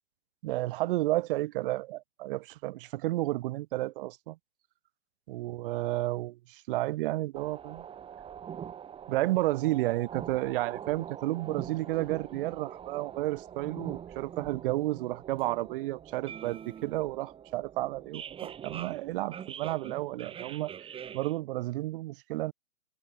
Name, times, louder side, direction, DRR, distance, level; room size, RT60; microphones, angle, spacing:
voice 1, 0.4-4.4 5.3-7.8 9.1-20.7 21.1-22.5, right 17 dB, 40° right, 7.3 m, -32 dB
sound 1, 7.3-21.4, right 8 dB, 15° right, 2.8 m, -44 dB
hypercardioid pair, 135°, 40 cm